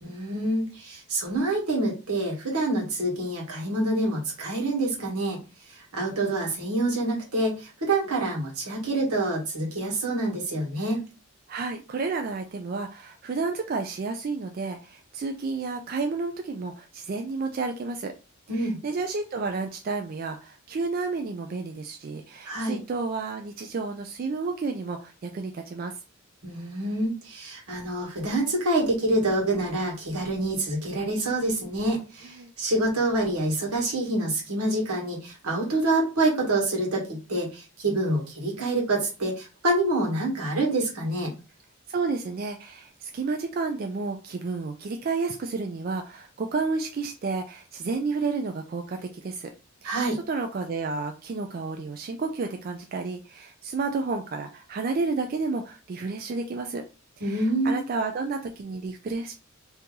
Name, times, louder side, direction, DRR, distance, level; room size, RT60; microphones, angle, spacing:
voice 1, 0.0-5.4 5.9-11.0 18.5-18.8 22.4-22.8 26.4-41.3 49.8-50.2 57.2-57.8, right 2 dB, 85° right, -2 dB, 1.5 m, -27 dB
voice 2, 11.5-18.1 18.6-25.9 32.4-32.5 41.9-49.0 49.2-49.5 49.8-56.8 57.2-59.3, right 4 dB, 40° right, 4 dB, 0.3 m, -31 dB
2.8 x 2.7 x 3.6 m, 0.31 s
head